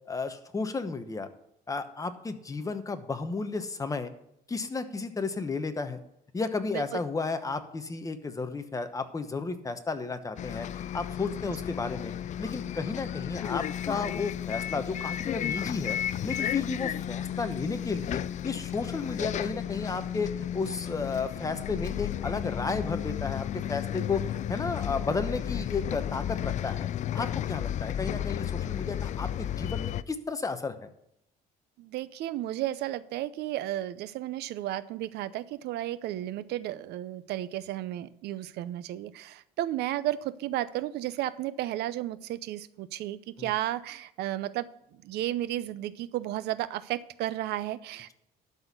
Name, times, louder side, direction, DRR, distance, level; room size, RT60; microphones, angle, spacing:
voice 1, 0.1-1.3 1.7-4.1 4.5-6.0 6.3-16.0 16.2-26.9 27.1-30.9 43.4-43.5, left 4 dB, 20° left, 8 dB, 1.0 m, -33 dB
Bus, 10.4-30.0, left 10 dB, 45° left, 0.4 m, -33 dB
voice 2, 31.8-48.1, right 14 dB, 80° right, 16 dB, 0.6 m, -33 dB
12.0 x 4.3 x 8.1 m, 0.78 s
cardioid pair, 110°, 17 cm